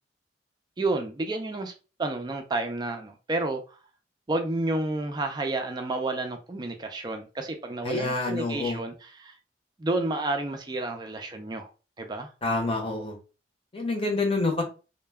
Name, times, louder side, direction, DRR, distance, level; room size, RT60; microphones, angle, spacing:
voice 1, 0.8-1.7 2.0-3.8 4.3-9.4 9.8-11.7 12.0-12.3, right 2 dB, 25° right, 0.3 m, -30 dB
voice 2, 7.8-8.8 12.4-13.2 13.7-14.6, left 2 dB, 30° left, 0.7 m, -27 dB
2.1 x 2.1 x 3.3 m
head